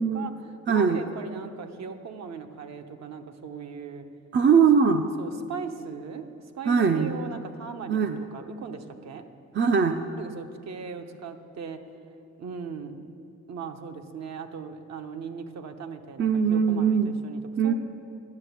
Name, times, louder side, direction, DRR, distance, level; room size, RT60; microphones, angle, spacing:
voice 1, 0.0-4.1 5.2-9.3 10.0-11.8 12.4-13.1 13.5-17.7, right 6 dB, 60° right, 6 dB, 1.0 m, -39 dB
voice 2, 0.7-1.0 4.3-5.0 6.7-7.2 7.9-8.2 9.5-10.0 16.2-17.2 17.6-17.7, right 6 dB, 40° right, 7 dB, 0.6 m, -21 dB
11.0 x 7.1 x 8.3 m, 2.6 s
cardioid pair, 90°, 30 cm